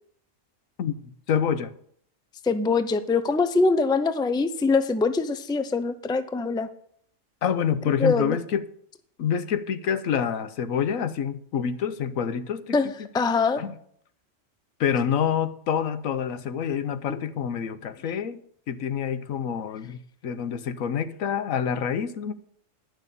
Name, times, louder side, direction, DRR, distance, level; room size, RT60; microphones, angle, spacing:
voice 1, 0.8-1.7 7.4-8.6 9.2-12.8 13.6-13.7 14.8-18.4 18.7-22.3, left 8 dB, 90° left, 1.3 m, -27 dB
voice 2, 2.4-6.7 8.0-8.4 12.7-13.6 17.1-17.2, left 4 dB, 5° left, 0.4 m, -23 dB
10.5 x 6.4 x 8.3 m
omnidirectional pair, 1.4 m